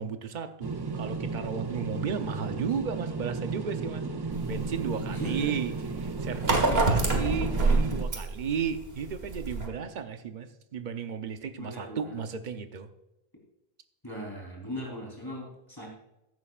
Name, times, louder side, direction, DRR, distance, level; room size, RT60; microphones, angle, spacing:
voice 1, 0.0-4.0 4.5-5.7 6.0-12.9, right 6 dB, 50° right, 9 dB, 0.9 m, -34 dB
sound 1, 0.6-8.0, right 4 dB, 30° right, 0.5 m, -34 dB
voice 2, 1.9-2.7 5.1-5.5 11.6-12.1 14.0-15.9, left 1 dB, 20° left, -2 dB, 3.7 m, -39 dB
sound 2, 4.3-9.7, right 3 dB, 75° right, 1.9 m, -27 dB
14.5 x 11.0 x 2.4 m, 0.94 s
omnidirectional pair, 1.0 m